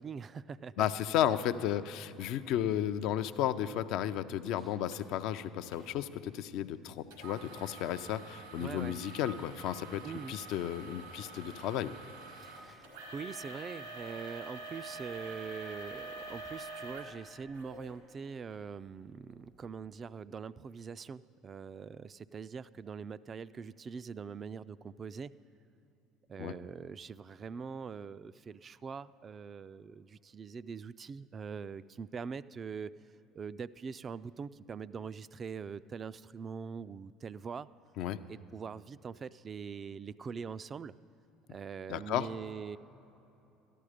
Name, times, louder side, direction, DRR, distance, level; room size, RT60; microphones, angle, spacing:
voice 1, 0.0-0.9 8.6-9.0 10.0-10.4 12.3-25.3 26.3-32.9 33.3-37.7 38.3-40.9 41.5-42.8, right 6 dB, 35° right, 16 dB, 0.3 m, -43 dB
voice 2, 0.8-10.0 10.3-11.9 26.4-26.6 38.0-38.2 41.9-42.3, left 11 dB, 65° left, 11 dB, 0.4 m, -33 dB
sound 1, 4.9-5.0 5.7-5.9 7.1-17.9 18.5-18.6 19.2-19.4, right 2 dB, 85° right, 2.0 m, -46 dB
13.5 x 11.0 x 5.0 m, 3.0 s
hypercardioid pair, 70°, 0 cm